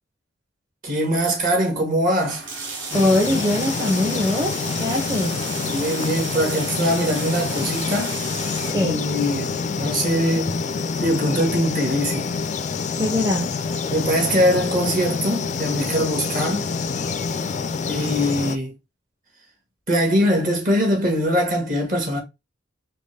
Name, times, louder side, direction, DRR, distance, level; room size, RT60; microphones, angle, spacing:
voice 1, 0.8-2.4 5.6-8.1 8.8-10.6 11.0-12.3 13.9-16.7 17.9-18.7 19.9-22.2, equal, 45° right, 1.7 m, -22 dB
sound 1, 2.2-8.7, right 4 dB, 70° right, 1.4 m, -33 dB
sound 2, 2.9-18.6, left 5 dB, 40° left, 0.4 m, -27 dB
voice 2, 2.9-5.4 8.7-9.0 13.0-13.5, left 1 dB, 15° right, 0.7 m, -22 dB
4.3 x 2.9 x 3.2 m
head